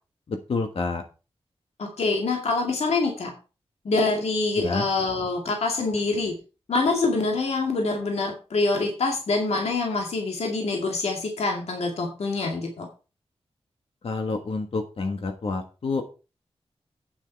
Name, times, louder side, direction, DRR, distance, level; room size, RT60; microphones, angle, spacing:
voice 1, 0.3-1.0 4.6-4.9 14.0-16.0, left 3 dB, 60° left, 5 dB, 1.3 m, -28 dB
voice 2, 1.8-3.3 3.8-6.4 6.7-12.9, left 3 dB, 75° left, 2 dB, 2.3 m, -25 dB
9.2 x 7.3 x 4.6 m, 0.33 s
wide cardioid pair, 135°, 11 cm